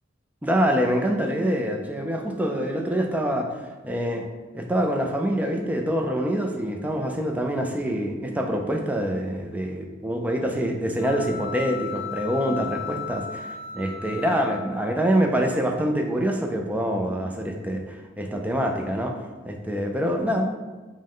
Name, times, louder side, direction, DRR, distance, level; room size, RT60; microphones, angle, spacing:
voice 1, 0.4-3.5 3.8-4.3 4.5-19.2 19.4-20.6, equal, 10° right, 2 dB, 0.3 m, -25 dB
sound 1, 11.0-15.1, left 8 dB, 70° left, 0.3 m, -36 dB
5.2 x 2.1 x 3.7 m, 1.3 s
head